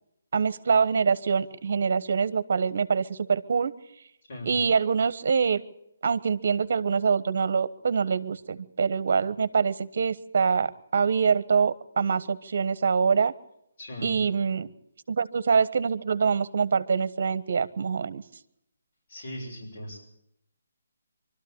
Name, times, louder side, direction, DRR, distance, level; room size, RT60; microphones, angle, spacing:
voice 1, 0.3-3.7 4.4-5.6 6.0-13.3 14.0-14.7 15.1-18.2, right 6 dB, 55° right, 15 dB, 1.2 m, -25 dB
voice 2, 13.8-14.1 19.1-20.0, equal, 55° left, -4 dB, 7.0 m, -38 dB
24.0 x 13.0 x 8.7 m, 0.80 s
hypercardioid pair, 160°, 0 cm